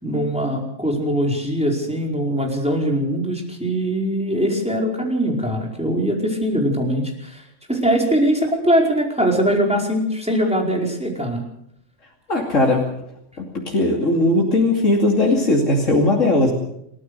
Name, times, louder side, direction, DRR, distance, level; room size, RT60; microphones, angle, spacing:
voice 1, 0.0-7.4 7.7-11.4, equal, 5° right, 0 dB, 4.8 m, -21 dB
voice 2, 12.3-12.8 13.4-16.5, left 2 dB, 90° left, -1 dB, 3.1 m, -18 dB
28.0 x 14.5 x 6.8 m, 0.75 s
omnidirectional pair, 1.3 m